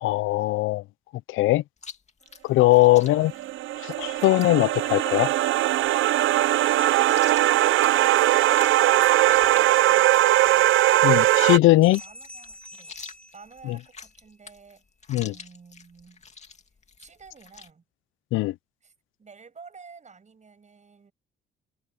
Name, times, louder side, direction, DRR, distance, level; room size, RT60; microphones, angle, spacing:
voice 1, 0.0-0.8 1.3-1.6 2.4-3.3 3.8-5.3 11.0-12.0 15.1-15.3 18.3-18.5, left 18 dB, 85° left, 0.5 m, -20 dB
Chewing mastication, 1.8-17.7, left 5 dB, 35° left, 2.4 m, -48 dB
voice 2, 2.9-3.6 6.0-10.8 11.8-12.9 13.3-14.9 15.1-16.2 17.0-17.8 18.8-18.9 19.2-21.1, right 5 dB, 35° right, 7.5 m, -50 dB
sound 1, 3.1-11.6, right 15 dB, 80° right, 0.6 m, -20 dB
sound 2, 6.6-8.2 11.8-14.3, equal, 5° left, 3.5 m, -47 dB
cardioid pair, 90°, 20 cm